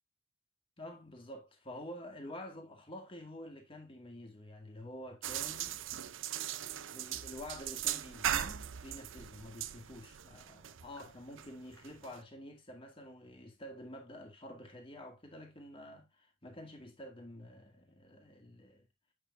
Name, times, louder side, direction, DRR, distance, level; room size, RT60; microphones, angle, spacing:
voice 1, 0.8-6.2 6.9-18.9, left 1 dB, 25° left, 2.1 m, -49 dB
sound 1, 5.2-12.2, right 10 dB, 60° right, 0.5 m, -39 dB
8.2 x 6.6 x 2.6 m
head